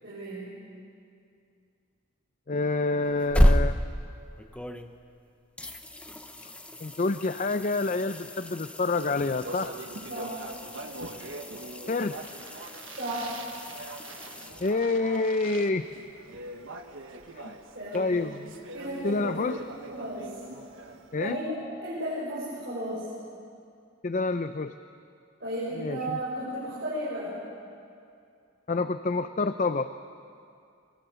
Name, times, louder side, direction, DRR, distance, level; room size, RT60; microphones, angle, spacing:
voice 1, 0.0-0.6 10.1-10.4 12.9-13.5 17.7-18.2 18.7-20.3 21.2-21.4 21.8-23.1 25.4-27.3, right 1 dB, 55° right, -8 dB, 6.5 m, -34 dB
voice 2, 2.5-3.8 6.8-9.7 11.9-12.2 14.6-15.9 17.3-17.5 17.9-18.6 19.0-19.6 21.1-21.4 24.0-24.7 25.8-26.2 28.7-29.9, left 3 dB, 40° left, 10 dB, 0.5 m, -28 dB
sound 1, 3.0-5.2 5.6-15.2 17.9-18.0, equal, 5° left, 0.7 m, -31 dB
Speech, 8.9-21.3, right 2 dB, 75° right, 1.4 m, -43 dB
24.5 x 22.5 x 6.9 m, 2.4 s
head